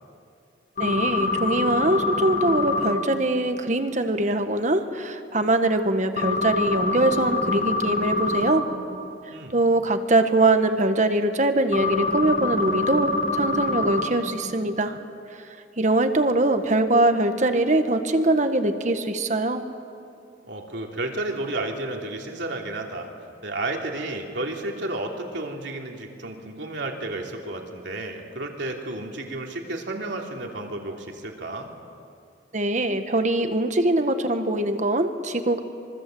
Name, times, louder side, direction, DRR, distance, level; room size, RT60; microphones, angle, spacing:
sound 1, 0.8-2.9 6.2-8.5 11.7-14.1, left 3 dB, 50° left, 3.7 m, -25 dB
voice 1, 0.8-8.6 9.5-15.0 15.3-15.4 15.8-19.6 32.5-35.6, right 2 dB, 40° right, 8 dB, 1.5 m, -22 dB
voice 2, 20.4-23.1 23.4-31.7, right 2 dB, 75° right, 1 dB, 3.1 m, -32 dB
25.5 x 23.5 x 7.9 m, 2.5 s
head